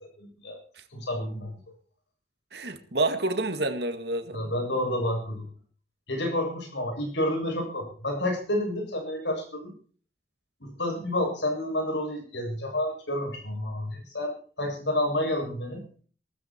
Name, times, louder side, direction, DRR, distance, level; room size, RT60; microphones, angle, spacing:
voice 1, 0.2-0.6 0.9-1.6 4.3-5.5 6.1-9.7 10.6-15.8, left 1 dB, 75° left, 2 dB, 7.6 m, -30 dB
voice 2, 2.5-4.5, right 2 dB, 65° right, 8 dB, 2.0 m, -28 dB
18.5 x 14.0 x 4.6 m, 0.43 s
head